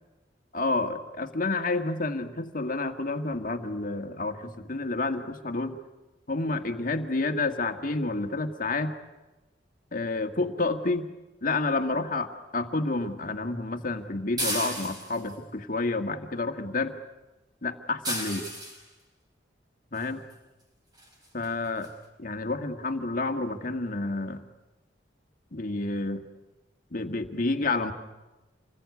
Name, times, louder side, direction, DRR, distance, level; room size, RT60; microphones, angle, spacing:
voice 1, 0.5-5.8 6.3-9.0 9.9-11.1 11.4-17.0 17.6-18.4 19.9-20.2 21.3-21.9 22.2-24.4 25.5-26.2 26.9-27.9, left 3 dB, 45° left, 7 dB, 1.8 m, -29 dB
sound 1, 14.4-15.3 18.0-18.8 20.3-20.4 21.0-21.1 21.4-21.5 21.8-21.9, right 1 dB, 20° right, 5.0 m, -32 dB
27.5 x 20.5 x 9.6 m, 1.1 s
head